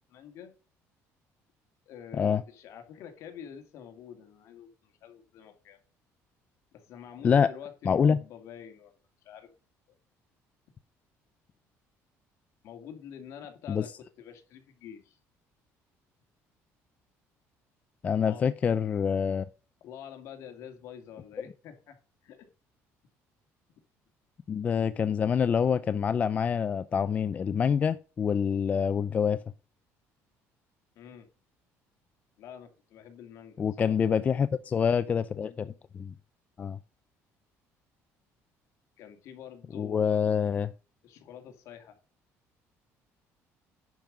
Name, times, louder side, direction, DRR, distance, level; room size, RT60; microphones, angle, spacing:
voice 1, 0.1-0.5 1.9-5.8 6.7-8.9 9.2-9.5 12.6-15.2 18.0-18.7 19.8-22.5 31.0-31.3 32.4-34.0 39.0-40.3 41.0-42.0, left 8 dB, 60° left, 2.2 m, -47 dB
voice 2, 7.9-8.2 13.7-13.8 18.0-19.4 24.5-29.4 33.6-36.1 36.6-36.8 39.7-40.7, left 7 dB, 25° left, 0.4 m, -26 dB
10.5 x 5.3 x 6.1 m
cardioid pair, 165°, 6 cm